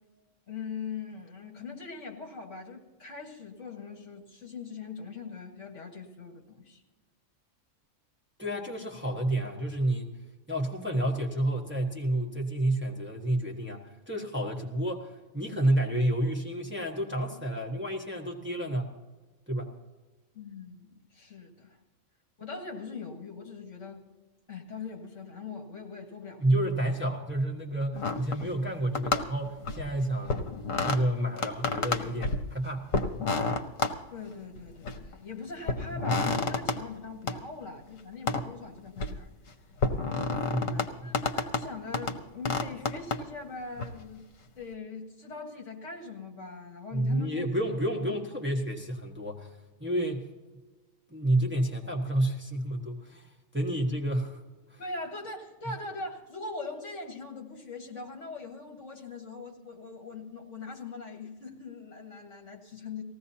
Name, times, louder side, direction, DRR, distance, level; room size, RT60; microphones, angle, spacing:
voice 1, 0.5-6.8 20.3-21.8 22.4-24.0 24.5-26.4 34.1-39.3 40.6-44.3 44.6-47.4 48.1-48.2 54.8-63.0, left 4 dB, 65° left, 2 dB, 2.0 m, -41 dB
voice 2, 8.4-10.1 10.5-18.9 19.5-19.7 26.4-30.4 30.8-32.9 40.5-41.2 46.9-49.5 49.8-50.3 51.1-53.3 53.5-54.4 54.7-54.8 55.6-55.7, right 1 dB, 10° right, 0 dB, 1.2 m, -30 dB
sound 1, 27.9-28.7 28.9-29.9 30.3-31.0 31.4-32.5 32.9-33.9 34.6-35.2 35.7-36.8 37.3-37.4 38.3-38.4 38.8-39.2 39.8-40.9 41.1-41.7 41.9-42.1 42.5-43.2 43.8-43.9, left 3 dB, 80° left, 1.3 m, -29 dB
19.5 x 15.5 x 2.8 m, 1.2 s
omnidirectional pair, 1.4 m